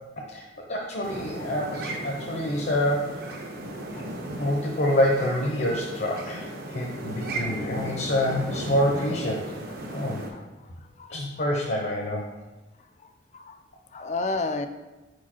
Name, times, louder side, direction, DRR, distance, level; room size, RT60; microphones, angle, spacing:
voice 1, 0.7-3.1 4.4-9.5 9.9-10.2 11.1-12.2, left 1 dB, 55° left, 0 dB, 0.8 m, -27 dB
sound 1, 1.0-10.3, right 1 dB, 55° right, 0.8 m, -35 dB
voice 2, 10.0-10.4 11.0-11.1 13.3-13.6 13.9-14.7, left 3 dB, 40° left, 8 dB, 0.4 m, -31 dB
4.8 x 4.5 x 4.4 m, 1.1 s
head